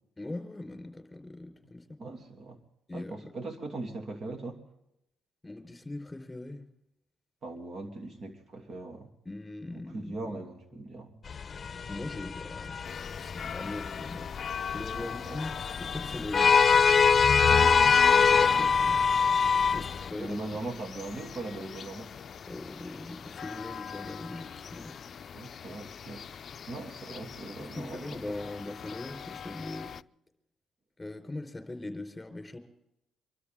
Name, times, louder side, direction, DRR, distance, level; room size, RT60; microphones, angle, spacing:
voice 1, 0.2-2.0 2.9-3.3 5.4-6.6 9.2-10.4 11.9-14.3 14.7-15.5 15.8-16.6 18.3-19.0 19.7-20.6 22.5-25.0 27.6-29.9 31.0-32.6, left 2 dB, 10° left, 5 dB, 4.3 m, -40 dB
voice 2, 2.0-2.6 2.9-4.6 7.4-9.1 9.7-11.2 15.0-15.4 17.5-18.8 19.7-19.9 20.1-22.1 25.3-28.4, right 2 dB, 55° right, 4 dB, 2.9 m, -40 dB
sound 1, 11.3-20.1, left 6 dB, 35° left, 0.8 m, -24 dB
sound 2, 12.8-30.0, left 8 dB, 50° left, 0.5 m, -40 dB
25.5 x 13.0 x 3.7 m, 0.81 s
cardioid pair, 90°, 0 cm